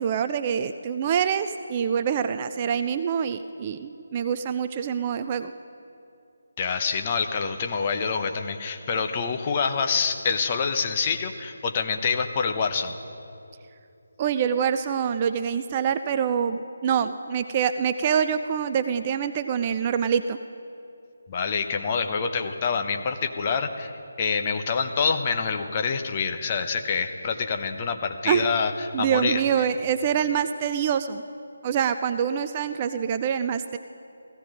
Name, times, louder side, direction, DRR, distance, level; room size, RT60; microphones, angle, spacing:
voice 1, 0.0-5.5 14.2-20.4 28.3-28.5 28.9-31.2 31.6-33.8, right 8 dB, 25° right, 10 dB, 0.3 m, -25 dB
voice 2, 6.6-12.9 21.3-29.7, left 5 dB, 25° left, 6 dB, 0.8 m, -26 dB
16.0 x 15.0 x 5.2 m, 2.6 s
figure-of-eight pair, 155°, 0 cm